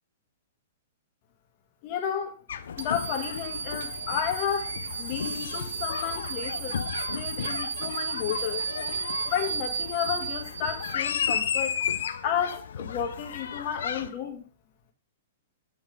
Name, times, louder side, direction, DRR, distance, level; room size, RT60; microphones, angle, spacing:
voice 1, 1.8-2.4 2.8-6.8 7.1-8.6 9.3-11.7 12.2-14.4, left 9 dB, 40° left, 1.7 m, -32 dB
sound 1, 2.5-14.1, left 7 dB, 75° left, 0.6 m, -34 dB
sound 2, 2.8-11.3, right 6 dB, 70° right, 1.1 m, -34 dB
8.6 x 3.6 x 5.0 m
hypercardioid pair, 120°, 0 cm